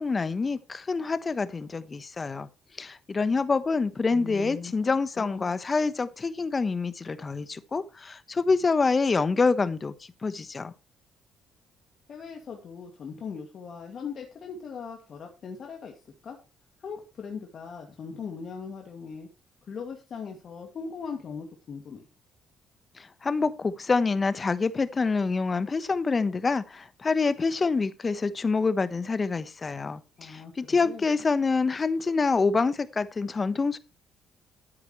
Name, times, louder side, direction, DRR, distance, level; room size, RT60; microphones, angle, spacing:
voice 1, 0.0-2.5 2.8-9.9 10.2-10.7 23.0-33.8, left 4 dB, 35° left, 1.1 m, -26 dB
voice 2, 4.1-4.7 5.2-5.5 12.1-15.9 16.2-16.4 16.8-19.3 19.7-22.1 30.2-31.1, left 6 dB, 55° left, 2.3 m, -39 dB
13.0 x 9.6 x 3.2 m
hypercardioid pair, 50°, 0 cm